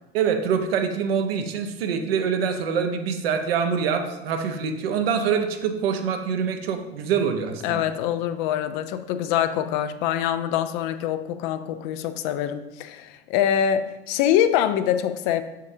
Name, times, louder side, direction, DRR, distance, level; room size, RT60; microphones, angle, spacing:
voice 1, 0.1-7.9, right 6 dB, 70° right, 6 dB, 0.8 m, -25 dB
voice 2, 7.6-15.4, left 10 dB, 55° left, 11 dB, 0.5 m, -24 dB
6.5 x 6.3 x 2.7 m, 0.98 s
figure-of-eight pair, 75°, 30 cm